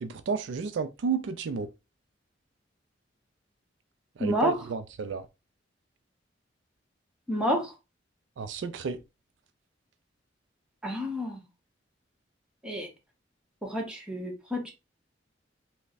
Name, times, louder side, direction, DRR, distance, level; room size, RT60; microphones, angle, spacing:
voice 1, 0.0-1.7 4.2-5.3 8.4-9.0, right 5 dB, 70° right, 0.4 m, -31 dB
voice 2, 4.2-4.6 7.3-7.7 10.8-11.4 12.6-12.9 13.6-14.7, equal, 5° right, 0.9 m, -29 dB
3.4 x 2.1 x 4.0 m
head